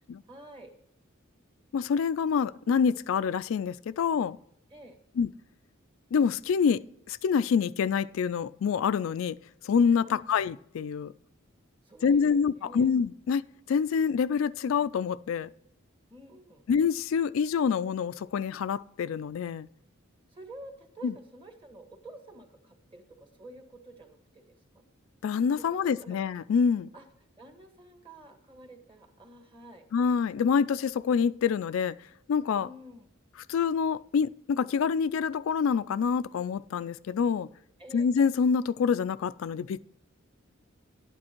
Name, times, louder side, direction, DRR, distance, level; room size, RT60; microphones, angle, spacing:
voice 1, 0.3-0.7 4.7-5.0 10.0-10.3 11.8-12.9 16.1-16.6 20.3-24.8 25.6-26.2 26.9-27.0 27.4-29.9 32.6-33.1 37.8-38.1, right 1 dB, 25° right, 1.6 m, -49 dB
voice 2, 1.7-4.4 5.2-5.3 6.1-6.8 7.1-9.4 9.6-11.1 12.0-13.4 13.7-15.5 16.7-19.7 21.0-21.1 25.2-26.9 29.9-32.0 32.3-32.7 33.5-37.5 37.9-39.8, left 6 dB, 70° left, 0.3 m, -26 dB
11.5 x 8.7 x 4.5 m
head